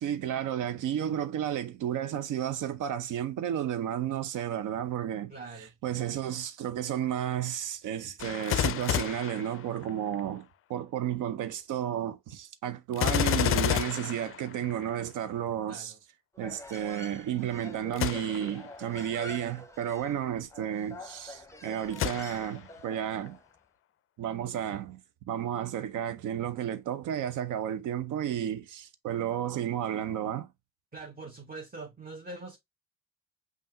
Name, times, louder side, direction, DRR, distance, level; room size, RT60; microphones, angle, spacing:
voice 1, 0.0-5.3 5.8-15.9 16.4-23.4 24.2-25.0 25.3-30.5, right 10 dB, 70° right, 0.7 m, -32 dB
voice 2, 5.3-5.7 15.7-16.0 30.9-32.6, right 3 dB, 25° right, 1.0 m, -43 dB
Gunshot gunfire, 8.2-10.2 12.9-15.0 17.9-18.6 19.2-19.3 21.9-22.7 23.3-23.4, left 11 dB, 45° left, 0.4 m, -30 dB
Human voice, 16.3-23.4, left 2 dB, 10° left, 0.8 m, -47 dB
5.3 x 2.5 x 2.7 m
supercardioid pair, 55°, 32 cm